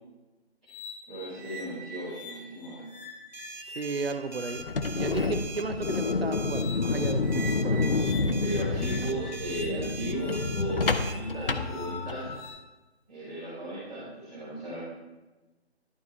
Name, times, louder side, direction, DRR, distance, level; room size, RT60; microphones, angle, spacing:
sound 1, 0.7-12.5, left 1 dB, 20° left, 2.2 m, -44 dB
voice 1, 1.1-2.8 8.4-12.3 13.1-14.8, right 1 dB, 5° right, -20 dB, 1.1 m, -36 dB
sound 2, 3.3-11.2, right 5 dB, 45° right, 0.5 m, -43 dB
voice 2, 3.7-4.6 4.9-7.8, right 4 dB, 65° right, 8 dB, 1.0 m, -34 dB
sound 3, 4.6-12.4, left 3 dB, 55° left, 0.7 m, -29 dB
11.5 x 5.0 x 4.1 m, 1.1 s
figure-of-eight pair, 175°, 33 cm